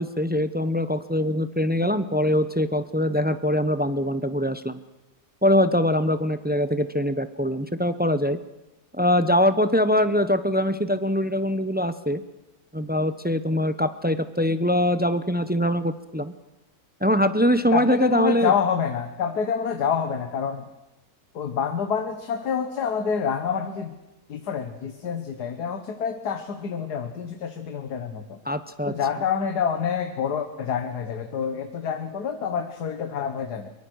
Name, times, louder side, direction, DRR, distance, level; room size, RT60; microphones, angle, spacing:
voice 1, 0.0-4.8 5.4-8.4 8.9-12.2 12.7-16.3 17.0-18.5 28.5-28.9, equal, 15° right, 12 dB, 0.4 m, -23 dB
voice 2, 17.7-20.7 21.3-23.9 24.3-28.4 28.9-33.7, left 7 dB, 75° left, 7 dB, 1.8 m, -27 dB
23.0 x 22.5 x 6.4 m, 0.99 s
omnidirectional pair, 1.7 m